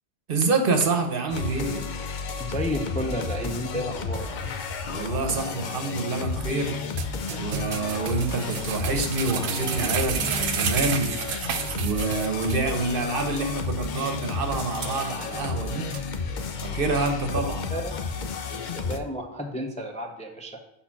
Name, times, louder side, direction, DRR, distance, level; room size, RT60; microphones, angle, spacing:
voice 1, 0.3-1.8 4.9-6.8 7.4-11.1 11.8-15.8 16.6-17.7, right 3 dB, 60° right, 5 dB, 1.0 m, -27 dB
sound 1, 1.3-19.0, left 5 dB, 55° left, 0.7 m, -32 dB
voice 2, 2.4-4.3 17.7-17.9 18.5-20.6, equal, 10° left, 2 dB, 0.5 m, -32 dB
sound 2, 7.0-12.7 13.0-13.1 13.5-13.6 14.0-14.1 14.6-15.4 15.9-16.0, right 7 dB, 85° right, 0.9 m, -31 dB
5.7 x 4.3 x 5.7 m, 0.82 s
omnidirectional pair, 1.1 m